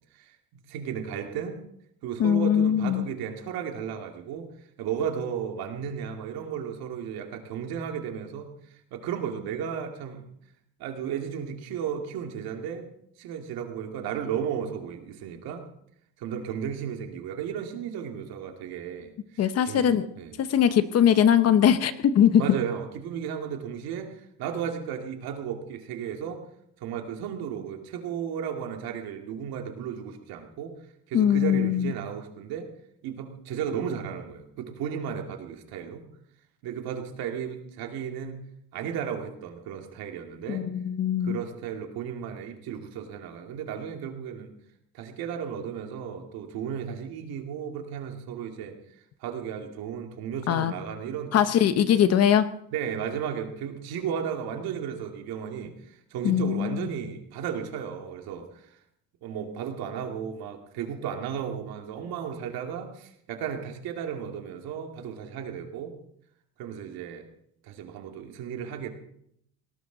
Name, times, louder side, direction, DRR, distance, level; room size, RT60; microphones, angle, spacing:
voice 1, 0.1-1.6 2.0-4.5 4.8-8.5 8.9-10.2 10.8-12.9 13.2-15.7 16.2-19.8 20.2-20.5 22.4-26.4 26.8-30.8 31.1-32.7 33.0-36.0 36.6-38.4 38.7-40.7 41.2-44.5 44.9-48.7 49.2-51.4 52.7-58.7 59.2-66.0 66.6-67.2 67.6-68.9, right 8 dB, 80° right, 4 dB, 2.4 m, -34 dB
voice 2, 2.2-3.1 19.4-20.1 20.4-22.4 31.1-31.9 40.5-41.4 50.5-50.7 51.3-52.4 56.2-56.9, left 9 dB, 45° left, 12 dB, 0.9 m, -21 dB
18.5 x 18.5 x 4.0 m, 0.72 s
cardioid pair, 155°, 36 cm